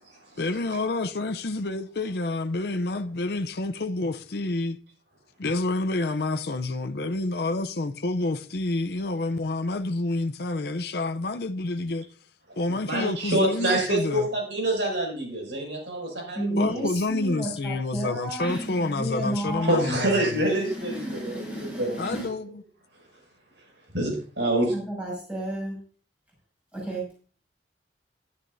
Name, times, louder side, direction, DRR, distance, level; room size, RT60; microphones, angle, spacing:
voice 1, 0.4-4.8 5.4-12.1 12.6-14.3 16.6-20.5 22.0-22.6, left 2 dB, 60° left, 0.6 m, -28 dB
voice 2, 12.8-16.9 19.6-22.0 23.9-24.7, right 1 dB, 85° right, 6.3 m, -26 dB
voice 3, 16.3-20.0 20.4-22.3 24.7-25.8 26.7-27.1, right 1 dB, 5° right, 6.3 m, -32 dB
13.5 x 12.0 x 2.7 m
head